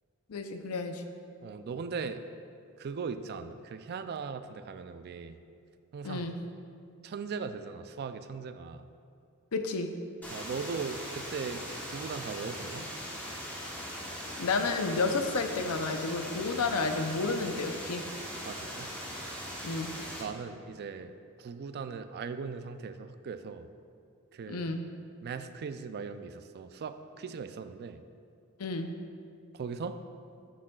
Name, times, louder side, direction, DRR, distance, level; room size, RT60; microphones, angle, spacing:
voice 1, 0.3-1.0 6.0-6.3 9.5-9.9 14.4-18.0 19.6-19.9 24.5-24.8 28.6-28.9, left 3 dB, 85° left, 6 dB, 0.6 m, -31 dB
voice 2, 1.4-2.2 2.8-5.4 5.9-6.3 7.0-8.8 10.3-12.9 18.4-18.9 20.2-23.7 24.3-24.7 25.2-28.0 29.5-30.0, right 5 dB, 45° right, 10 dB, 0.3 m, -39 dB
sound 1, 10.2-20.2, equal, 5° left, 1.0 m, -40 dB
11.5 x 6.2 x 2.3 m, 2.4 s
head